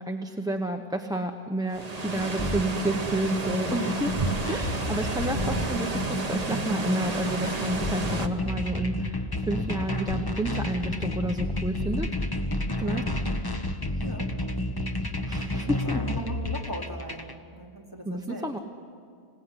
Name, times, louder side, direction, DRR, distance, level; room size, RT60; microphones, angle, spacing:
voice 1, 0.0-4.2 4.5-12.1 12.8-13.0 14.0-14.1 15.3-16.0 18.0-18.6, right 1 dB, 5° right, 4 dB, 0.9 m, -30 dB
sound 1, 1.7-8.3, right 3 dB, 40° right, 1.4 m, -31 dB
sound 2, 2.4-17.3, left 1 dB, 25° left, 1.1 m, -31 dB
voice 2, 5.3-5.7 12.8-13.1 14.0-14.3 15.5-18.5, equal, 20° right, -2 dB, 3.1 m, -39 dB
26.0 x 18.0 x 9.8 m, 2.4 s
omnidirectional pair, 1.0 m